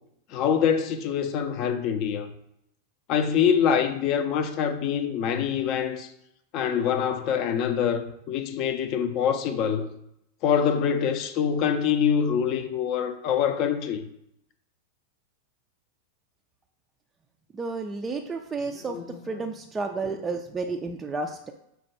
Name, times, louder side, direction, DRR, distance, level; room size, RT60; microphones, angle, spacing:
voice 1, 0.3-2.3 3.1-6.1 6.5-9.9 10.4-14.0 18.9-19.0 19.4-19.5, left 8 dB, 40° left, 0.5 m, -25 dB
voice 2, 17.5-19.0 19.2-21.5, right 3 dB, 15° right, 0.3 m, -31 dB
5.7 x 2.2 x 4.2 m
figure-of-eight pair, 90°, 0 cm